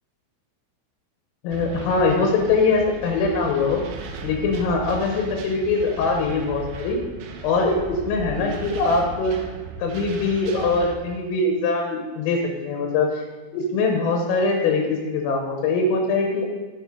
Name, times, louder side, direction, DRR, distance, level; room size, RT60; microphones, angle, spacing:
voice 1, 1.4-3.8 4.2-7.0 7.4-9.4 9.8-13.2 13.5-16.5, left 3 dB, 85° left, 2 dB, 3.7 m, -22 dB
sound 1, 1.5-11.0, right 2 dB, 80° right, 2.5 m, -37 dB
9.6 x 6.6 x 5.0 m, 1.3 s
omnidirectional pair, 6.0 m